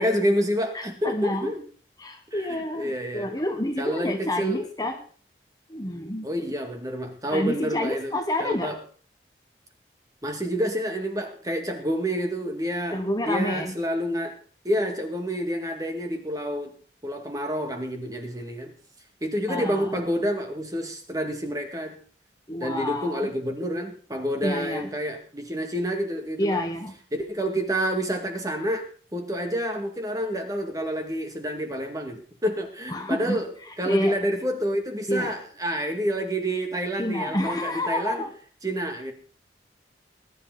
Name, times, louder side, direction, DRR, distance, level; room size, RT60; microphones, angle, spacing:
voice 1, 0.0-1.6 2.3-3.3 3.8-4.6 6.2-8.1 8.4-8.8 10.2-13.0 13.3-14.4 14.6-16.7 17.0-18.7 19.2-22.0 22.6-26.6 27.1-28.8 29.1-33.5 33.8-38.2 38.6-39.1, equal, 20° right, 4 dB, 2.2 m, -28 dB
voice 2, 0.7-1.5 2.0-5.0 5.7-6.3 7.3-8.7 12.9-13.8 19.5-20.0 22.5-23.3 24.4-24.9 26.4-26.9 32.9-33.4 33.8-34.2 35.1-35.4 37.0-38.3, left 1 dB, 20° left, 5 dB, 1.3 m, -29 dB
20.5 x 11.0 x 4.0 m, 0.41 s
head